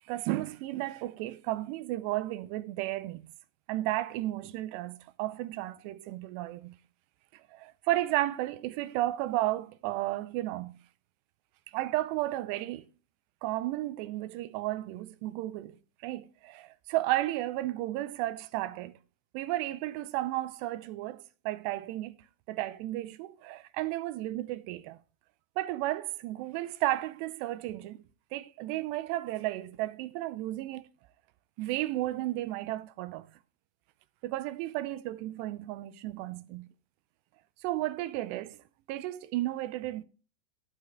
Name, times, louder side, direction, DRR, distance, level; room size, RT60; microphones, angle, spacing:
voice 1, 0.1-3.3 3.7-6.8 7.5-10.8 11.7-12.9 13.4-15.8 16.0-19.0 19.3-22.2 22.5-25.0 25.6-28.0 28.3-30.8 31.6-33.3 34.2-36.7 37.6-38.6 38.9-40.1, right 16 dB, 90° right, 2.8 m, -33 dB
15.0 x 5.6 x 3.4 m
omnidirectional pair, 4.8 m